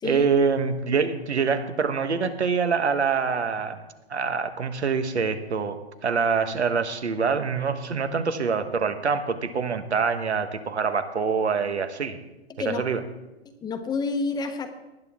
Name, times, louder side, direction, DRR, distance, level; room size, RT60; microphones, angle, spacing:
voice 1, 0.0-3.8 4.1-12.2 12.6-13.0, right 5 dB, 85° right, 9 dB, 1.4 m, -25 dB
voice 2, 12.5-12.8 13.6-14.7, left 4 dB, 10° left, 7 dB, 1.0 m, -29 dB
19.0 x 10.5 x 3.6 m, 1.0 s
hypercardioid pair, 130°, 33 cm